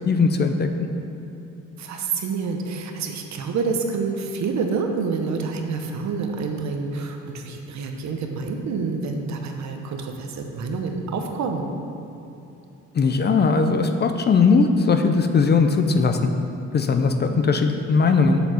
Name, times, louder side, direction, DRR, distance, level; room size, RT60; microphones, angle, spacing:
voice 1, 0.1-0.9 12.9-16.3 16.7-18.4, left 4 dB, 35° left, 7 dB, 0.5 m, -19 dB
voice 2, 1.8-11.7, right 4 dB, 65° right, 4 dB, 0.9 m, -28 dB
6.9 x 4.1 x 6.1 m, 2.8 s
cardioid pair, 90°, 30 cm